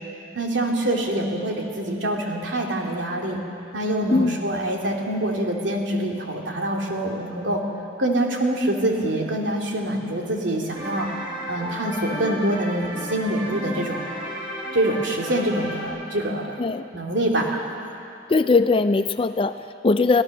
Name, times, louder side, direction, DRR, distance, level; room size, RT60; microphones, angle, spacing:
voice 1, 0.3-3.4 3.7-7.6 8.0-11.1 11.5-14.0 14.7-16.6 16.9-17.6, right 1 dB, 75° right, 0 dB, 2.8 m, -25 dB
sound 1, 10.7-15.8, equal, 20° right, 7.2 m, -33 dB
voice 2, 18.3-20.2, left 3 dB, 30° left, 11 dB, 0.4 m, -20 dB
25.5 x 16.5 x 6.6 m, 2.6 s
head